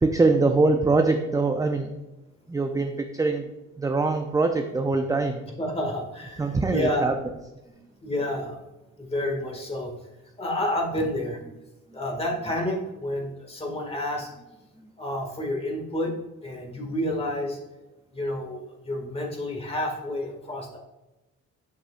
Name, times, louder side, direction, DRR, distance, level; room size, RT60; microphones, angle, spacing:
voice 1, 0.0-1.9 2.5-3.5 3.8-5.4 6.4-7.1, right 3 dB, 10° right, 6 dB, 0.4 m, -23 dB
voice 2, 5.6-7.1 7.8-8.6 9.0-9.9 10.4-11.6 11.9-14.4 14.8-17.6 18.1-20.8, left 1 dB, 20° left, 1 dB, 1.8 m, -30 dB
8.1 x 6.0 x 2.4 m, 1.0 s
cardioid pair, 90°, 30 cm